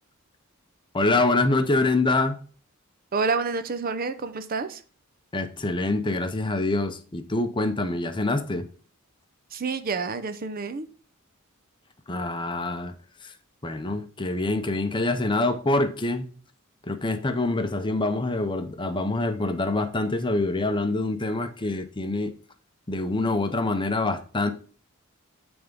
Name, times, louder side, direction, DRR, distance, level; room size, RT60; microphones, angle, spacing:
voice 1, 0.9-2.4 5.3-8.7 12.1-12.9 13.2-13.3 13.6-16.3 16.9-22.3 22.9-24.5, left 2 dB, 20° left, 0.6 m, -25 dB
voice 2, 3.1-4.8 9.5-10.9, right 4 dB, 45° right, 0.6 m, -28 dB
9.1 x 3.5 x 5.2 m
head